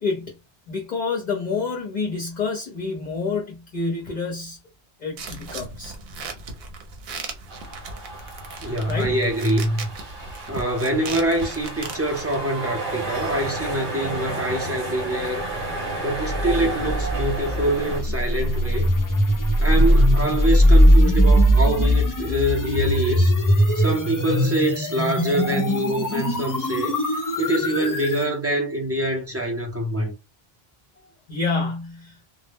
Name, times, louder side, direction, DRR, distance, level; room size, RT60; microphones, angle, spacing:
voice 1, 0.0-0.3 0.7-4.6 5.0-5.9 8.9-9.1 31.3-32.1, left 4 dB, 50° left, 0.7 m, -28 dB
sound 1, 5.2-12.4, right 4 dB, 75° right, 0.9 m, -37 dB
sound 2, 7.5-18.0, right 2 dB, 55° right, 1.1 m, -32 dB
voice 2, 8.6-9.9 10.5-15.5 16.0-18.9 19.6-23.3 23.7-27.0 27.4-30.1, right 1 dB, 20° right, 0.5 m, -25 dB
sound 3, 16.2-28.3, equal, 35° left, 0.3 m, -20 dB
2.1 x 2.0 x 3.4 m
omnidirectional pair, 1.0 m